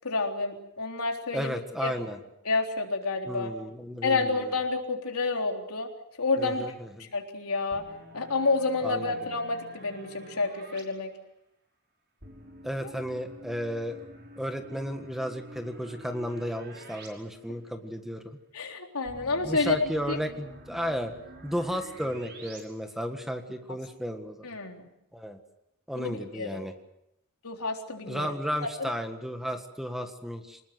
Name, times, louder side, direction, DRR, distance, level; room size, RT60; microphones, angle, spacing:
voice 1, 0.0-1.9 2.5-3.5 4.0-5.9 6.2-6.7 7.0-7.8 8.1-11.1 12.8-12.9 18.5-20.2 24.4-24.9 26.0-26.6 27.4-28.3 28.8-28.9, left 3 dB, 85° left, 2 dB, 3.8 m, -29 dB
voice 2, 1.3-2.2 3.3-4.5 6.4-7.1 8.8-9.1 12.6-14.0 14.4-18.4 19.4-21.1 21.4-24.5 25.1-25.4 25.9-26.7 28.1-30.6, equal, ahead, 6 dB, 1.7 m, -33 dB
sound 1, 7.7-10.8 12.2-17.1 17.4-17.5 19.1-22.6, right 1 dB, 50° right, 5.6 m, -48 dB
26.5 x 20.0 x 7.7 m, 0.82 s
head